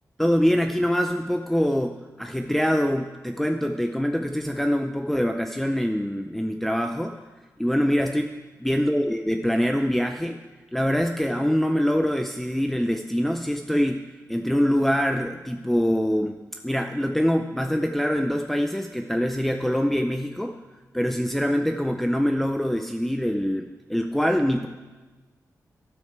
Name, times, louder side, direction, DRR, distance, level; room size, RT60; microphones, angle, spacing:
voice 1, 0.2-7.2 7.6-8.3 8.6-10.4 10.7-20.6 20.9-24.7, equal, 5° left, 4 dB, 0.6 m, -24 dB
12.5 x 12.5 x 4.6 m, 1.2 s
wide cardioid pair, 115°, 7 cm